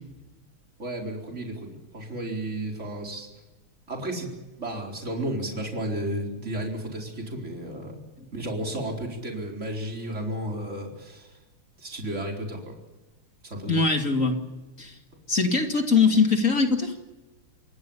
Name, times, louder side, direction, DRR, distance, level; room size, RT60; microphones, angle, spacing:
voice 1, 0.8-3.3 3.9-8.0 8.3-11.3 11.8-12.8 13.4-13.9, right 1 dB, 30° right, 1 dB, 4.6 m, -33 dB
voice 2, 13.7-14.4 14.8-14.9 15.3-16.9, left 4 dB, 35° left, 4 dB, 2.7 m, -22 dB
28.0 x 20.0 x 7.1 m, 1.2 s
omnidirectional pair, 2.4 m